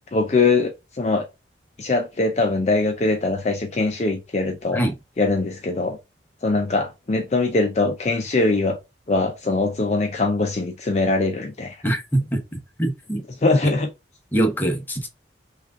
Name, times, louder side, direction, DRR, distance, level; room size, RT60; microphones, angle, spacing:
voice 1, 0.1-1.3 1.8-4.8 5.2-6.0 6.4-8.8 9.1-11.8 13.4-13.9, left 3 dB, 35° left, 0.5 m, -22 dB
voice 2, 11.8-13.2 13.6-13.7 14.3-15.1, right 1 dB, 10° left, 0.9 m, -24 dB
5.8 x 2.4 x 3.6 m
head